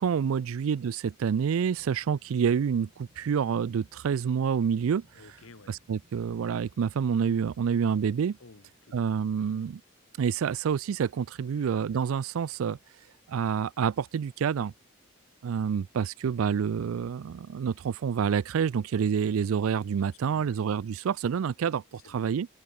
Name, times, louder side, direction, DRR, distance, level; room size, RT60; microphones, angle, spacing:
voice 1, 0.0-5.0 5.7-8.4 8.9-9.8 10.2-12.8 13.3-14.7 15.4-21.8 22.1-22.5, right 7 dB, 85° right, 0.4 m, -28 dB
sound 1, 1.6-8.7, equal, 50° right, 4.8 m, -64 dB
voice 2, 5.1-5.7 8.4-8.9 20.1-20.6 21.9-22.2, left 3 dB, 85° left, 1.4 m, -54 dB
head